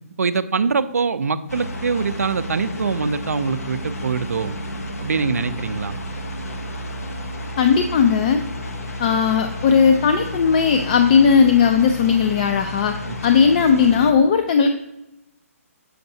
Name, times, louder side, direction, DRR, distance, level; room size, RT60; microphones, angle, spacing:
voice 1, 0.2-4.6 5.0-6.0, right 5 dB, 75° right, 13 dB, 0.5 m, -23 dB
sound 1, 1.5-14.1, left 1 dB, 75° left, 1.0 m, -31 dB
voice 2, 7.6-8.4 9.0-12.9 13.2-14.7, left 6 dB, 35° left, 6 dB, 0.4 m, -17 dB
6.8 x 6.5 x 2.7 m, 0.89 s
figure-of-eight pair, 145°, 8 cm